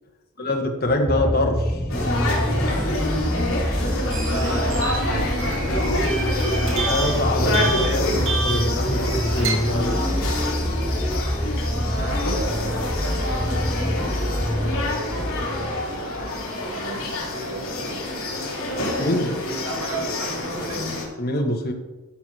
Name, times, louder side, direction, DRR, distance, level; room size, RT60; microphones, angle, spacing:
voice 1, 0.4-1.6 6.9-10.0 19.0-19.3 21.2-21.7, left 1 dB, 45° left, 3 dB, 1.4 m, -24 dB
sound 1, 0.9-16.5 17.3-17.4, equal, 5° left, 0.5 m, -26 dB
voice 2, 1.1-1.4 4.1-5.4 11.9-15.2 16.7-18.5 19.6-21.1, right 3 dB, 75° right, 0 dB, 2.2 m, -37 dB
sound 2, 1.9-21.0, left 1 dB, 70° left, 3.2 m, -27 dB
sound 3, 4.1-9.5, right 3 dB, 55° right, 2.7 m, -30 dB
13.0 x 4.6 x 6.2 m, 1.2 s
head